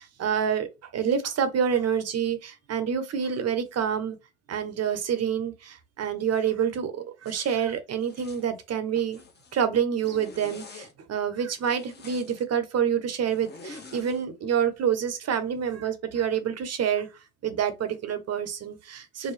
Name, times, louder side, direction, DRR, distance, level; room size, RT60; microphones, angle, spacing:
voice 1, 0.0-4.2 4.5-9.2 9.5-17.1 17.4-19.3, right 8 dB, 45° right, 1.0 m, -27 dB
Zipper (clothing), 7.2-7.6 8.0-8.5 8.9-9.7 10.0-10.9 11.6-12.4 13.3-14.2, left 3 dB, 25° left, 1.1 m, -47 dB
4.8 x 2.2 x 3.3 m
hypercardioid pair, 70°, 37 cm